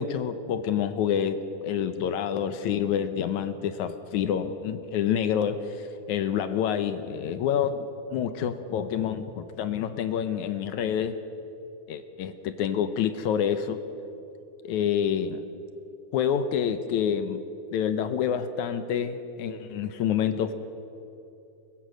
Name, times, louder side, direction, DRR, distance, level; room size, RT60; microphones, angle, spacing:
voice 1, 0.0-11.2 11.9-13.8 14.6-15.4 16.1-17.4 17.7-20.5, left 8 dB, 75° left, 10 dB, 2.1 m, -27 dB
22.5 x 21.0 x 6.4 m, 2.8 s
omnidirectional pair, 3.7 m